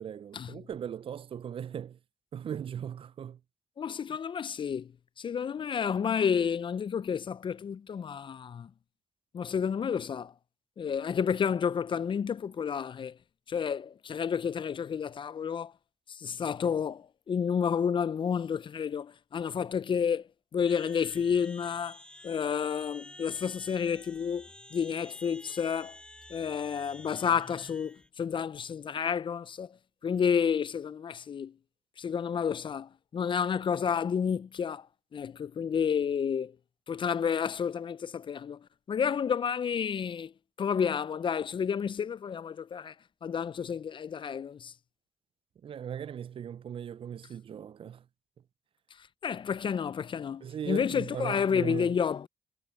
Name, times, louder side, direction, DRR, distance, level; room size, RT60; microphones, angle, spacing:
voice 1, 0.0-2.0 2.3-3.4 45.6-48.0 50.4-51.9, right 9 dB, 55° right, 0.4 m, -38 dB
voice 2, 3.8-4.9 5.2-8.7 9.3-10.3 10.8-13.2 13.5-15.7 16.1-22.0 22.2-26.0 26.3-29.8 30.0-31.5 32.0-34.9 35.1-36.6 36.9-40.3 40.6-42.9 43.2-44.7 49.0-52.3, left 7 dB, 50° left, 0.4 m, -30 dB
sound 1, 20.7-28.1, left 1 dB, 10° left, 4.2 m, -51 dB
supercardioid pair, 50°, 11 cm